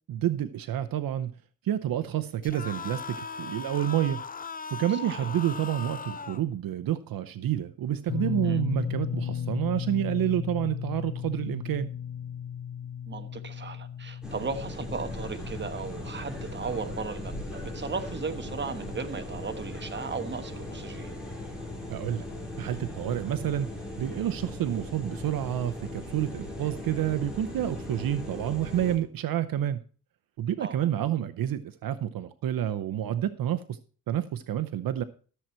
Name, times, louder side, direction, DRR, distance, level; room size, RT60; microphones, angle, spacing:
voice 1, 0.1-1.3 1.6-4.2 4.7-11.9 21.9-22.2 22.6-23.7 24.0-29.8 30.4-33.8 34.1-35.0, right 11 dB, 70° right, 0.7 m, -29 dB
sound 1, 2.4-6.4, left 5 dB, 25° left, 0.6 m, -38 dB
sound 2, 8.1-20.3 20.6-20.8 22.5-22.6, left 8 dB, 60° left, 1.8 m, -36 dB
voice 2, 13.1-21.1 30.6-30.9, right 4 dB, 30° right, 1.3 m, -36 dB
sound 3, 14.2-29.0, left 1 dB, ahead, 4.2 m, -38 dB
13.5 x 7.4 x 4.5 m
cardioid pair, 120°, 36 cm